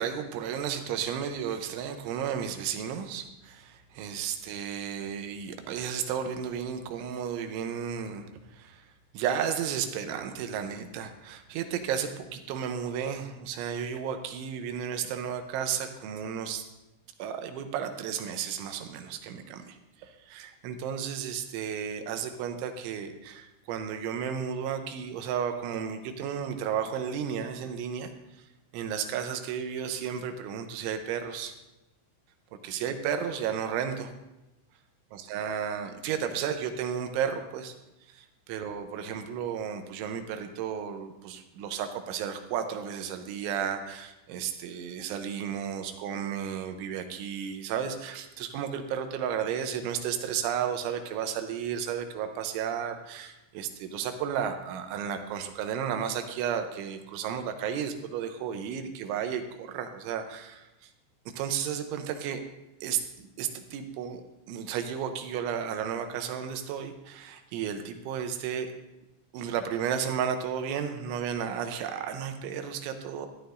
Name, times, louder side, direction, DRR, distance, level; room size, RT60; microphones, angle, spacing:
voice 1, 0.0-8.8 9.1-16.6 17.2-28.1 28.7-31.5 32.6-34.1 35.1-37.7 38.1-60.7 61.3-62.4 62.8-64.2 64.5-68.7 69.3-73.3, right 8 dB, 80° right, 6 dB, 3.0 m, -33 dB
14.5 x 11.0 x 2.6 m, 0.96 s
omnidirectional pair, 5.6 m